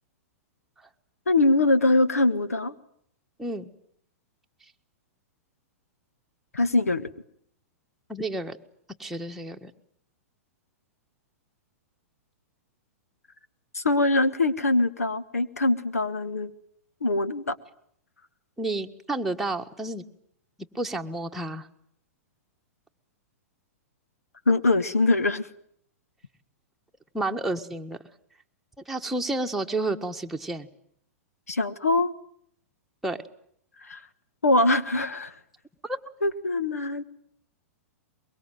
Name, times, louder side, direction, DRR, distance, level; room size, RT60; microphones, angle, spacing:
voice 1, 1.3-2.8 6.5-7.1 13.7-16.5 17.0-17.6 24.5-25.5 31.5-32.1 33.8-34.0 34.4-35.3 36.2-37.0, left 2 dB, 90° left, 13 dB, 1.4 m, -23 dB
voice 2, 3.4-3.7 8.1-8.6 9.0-9.7 18.6-20.0 20.7-21.7 27.1-28.0 28.9-30.7 33.0-33.2 35.8-36.0, right 2 dB, 5° right, 2 dB, 1.7 m, -30 dB
23.5 x 23.0 x 9.3 m, 0.69 s
hypercardioid pair, 110°, 8 cm